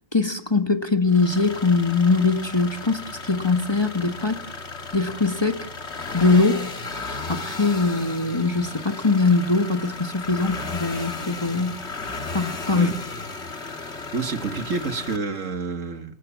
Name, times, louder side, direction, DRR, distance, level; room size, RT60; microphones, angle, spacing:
voice 1, 0.1-4.4 4.9-5.7 6.1-6.7 7.3-11.8 12.3-12.9, left 3 dB, 20° left, 1.2 m, -22 dB
sound 1, 1.1-15.2, left 3 dB, 55° left, 2.4 m, -35 dB
voice 2, 14.1-16.2, right 4 dB, 75° right, 2.1 m, -28 dB
27.5 x 18.0 x 7.3 m
omnidirectional pair, 1.3 m